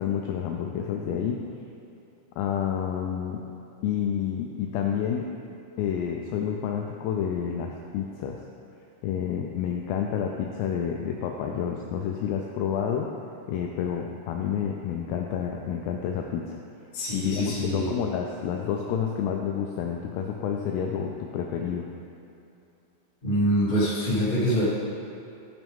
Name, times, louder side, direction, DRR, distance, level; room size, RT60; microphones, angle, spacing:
voice 1, 0.0-1.4 2.4-3.4 3.8-5.3 5.8-8.4 9.0-13.1 13.5-16.6 17.1-21.9, left 8 dB, 85° left, 1 dB, 2.4 m, -29 dB
voice 2, 16.9-17.9 23.2-24.7, equal, 65° left, -9 dB, 0.5 m, -25 dB
14.0 x 6.2 x 3.6 m, 2.6 s
omnidirectional pair, 5.4 m